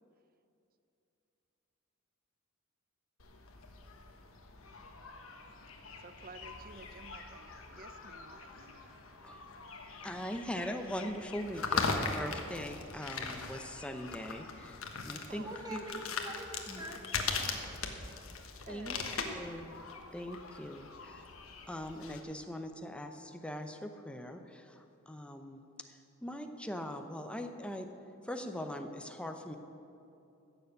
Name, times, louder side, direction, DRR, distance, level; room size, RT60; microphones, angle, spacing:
sound 1, 3.2-22.2, left 4 dB, 70° left, 1.3 m, -41 dB
voice 1, 6.0-9.0 15.2-15.5 18.6-19.6, right 3 dB, 45° right, 0.6 m, -52 dB
voice 2, 10.0-14.8 15.0-15.8 16.7-16.9 18.7-19.0 19.2-19.8 20.1-21.2 21.7-27.9 28.2-29.6, equal, 5° left, 0.8 m, -41 dB
voice 3, 15.4-17.9, right 1 dB, 20° right, 1.4 m, -46 dB
15.0 x 7.0 x 8.0 m
head